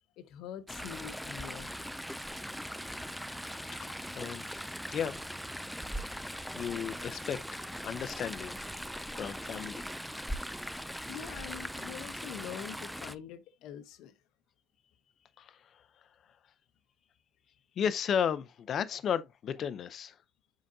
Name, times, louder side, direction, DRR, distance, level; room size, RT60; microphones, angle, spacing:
voice 1, 0.2-1.7 11.1-14.1, left 10 dB, 75° left, 0.9 m, -44 dB
Chatter / Stream, 0.7-13.1, equal, ahead, 0.3 m, -40 dB
voice 2, 4.1-5.2 6.5-8.6 9.1-9.8 15.4-15.8 17.8-20.2, left 8 dB, 45° left, 0.6 m, -34 dB
7.7 x 5.0 x 2.7 m
cardioid pair, 160°, 0 cm